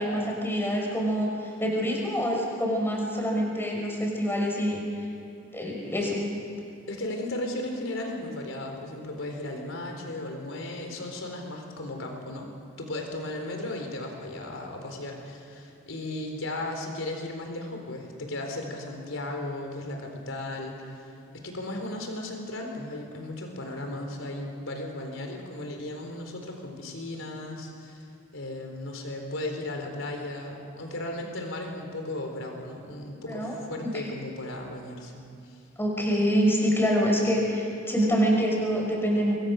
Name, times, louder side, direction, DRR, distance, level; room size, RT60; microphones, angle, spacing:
voice 1, 0.0-4.8 5.5-6.2 33.3-33.6 33.8-34.0 35.8-39.3, equal, 10° left, -1 dB, 5.8 m, -26 dB
voice 2, 6.9-12.5 12.8-28.1 28.3-35.6, left 1 dB, 85° left, 3 dB, 4.1 m, -36 dB
27.0 x 22.0 x 6.5 m, 2.7 s
head